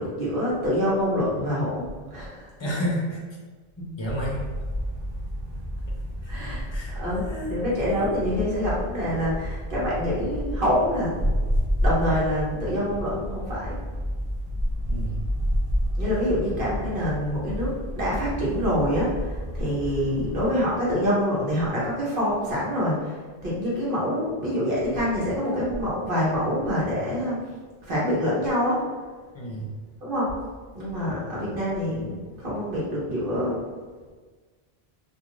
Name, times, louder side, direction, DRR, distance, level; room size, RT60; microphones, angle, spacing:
voice 1, 0.0-2.5 6.3-6.7 6.9-11.3 11.8-13.8 15.9-27.5 27.8-28.9 30.0-30.3 30.7-33.6, equal, 60° right, -7 dB, 1.1 m, -26 dB
voice 2, 2.6-3.2 3.8-4.5 6.2-6.3 6.7-7.5 14.9-15.3 29.3-29.7, equal, 35° left, -3 dB, 0.6 m, -31 dB
sound 1, 4.0-20.5, equal, 45° right, 0.7 m, -30 dB
2.4 x 2.4 x 3.1 m, 1.4 s
omnidirectional pair, 1.0 m